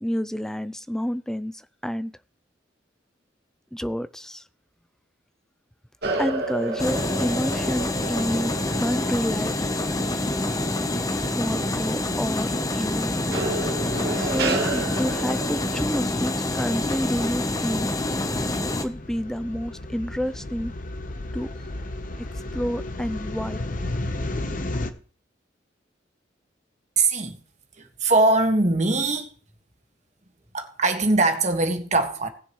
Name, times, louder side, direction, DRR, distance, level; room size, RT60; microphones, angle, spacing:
voice 1, 0.0-2.1 3.7-4.4 6.2-8.5 8.8-9.5 11.3-13.2 14.2-17.9 18.8-20.7 21.3-21.5 22.5-23.6, equal, 5° left, 0.4 m, -29 dB
sound 1, 6.0-10.9 11.2-11.7 13.3-15.8, right 3 dB, 60° right, 2.0 m, -31 dB
sound 2, 6.8-18.8, left 2 dB, 20° left, 0.9 m, -26 dB
sound 3, 16.4-24.9, left 1 dB, 45° left, 0.9 m, -34 dB
voice 2, 27.0-27.4 27.8-29.3 30.5-32.3, right 2 dB, 40° right, 1.7 m, -21 dB
19.5 x 7.1 x 3.1 m
head